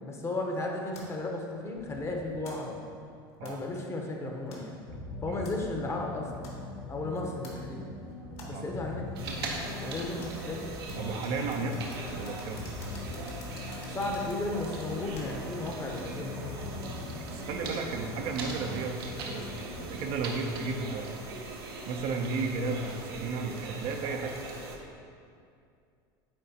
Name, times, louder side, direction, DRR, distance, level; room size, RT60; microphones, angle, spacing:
voice 1, 0.0-2.8 3.4-4.7 5.2-6.6 6.9-7.8 8.5-9.1 9.7-10.6 13.9-16.5, left 2 dB, 20° left, 0 dB, 0.9 m, -34 dB
sound 1, 0.9-15.6, left 2 dB, 55° left, 1.4 m, -52 dB
sound 2, 4.9-20.2, left 2 dB, 75° left, 1.3 m, -42 dB
sound 3, 9.2-24.8, right 3 dB, 80° right, 0.9 m, -40 dB
voice 2, 11.0-12.6 17.3-19.5 20.0-21.2 21.9-24.4, right 4 dB, 55° right, 3 dB, 0.6 m, -34 dB
9.0 x 3.7 x 2.8 m, 2.4 s
hypercardioid pair, 95°, 12 cm